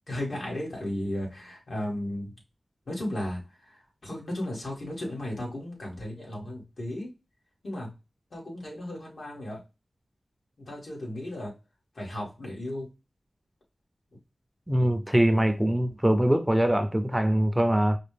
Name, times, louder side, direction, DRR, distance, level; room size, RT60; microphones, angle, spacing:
voice 1, 0.1-2.3 2.9-3.4 3.7-7.1 7.6-7.9 8.3-9.6 10.7-11.5 12.0-12.9, left 1 dB, 70° left, 2.1 m, -35 dB
voice 2, 14.7-18.0, right 1 dB, 10° right, 0.5 m, -23 dB
4.9 x 2.4 x 3.4 m
wide cardioid pair, 95°, 0 cm